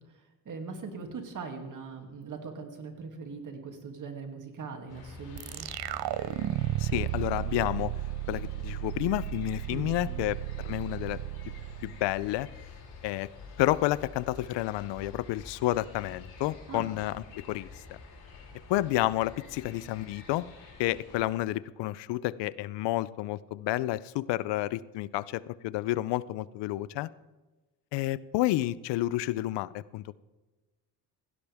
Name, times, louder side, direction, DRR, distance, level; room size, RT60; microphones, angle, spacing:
voice 1, 0.0-5.7 9.7-10.3 16.7-16.9, right 4 dB, 50° right, 4 dB, 2.6 m, -41 dB
sound 1, 4.9-21.3, left 4 dB, 60° left, 4.8 m, -48 dB
sound 2, 5.4-12.6, right 15 dB, 65° right, 0.7 m, -34 dB
voice 2, 6.8-7.9 8.3-11.2 11.8-12.5 13.0-13.3 13.6-18.0 18.7-20.5 20.8-27.1 27.9-30.1, left 16 dB, 85° left, 19 dB, 0.6 m, -30 dB
16.5 x 16.5 x 3.5 m, 1.2 s
cardioid pair, 105°, 41 cm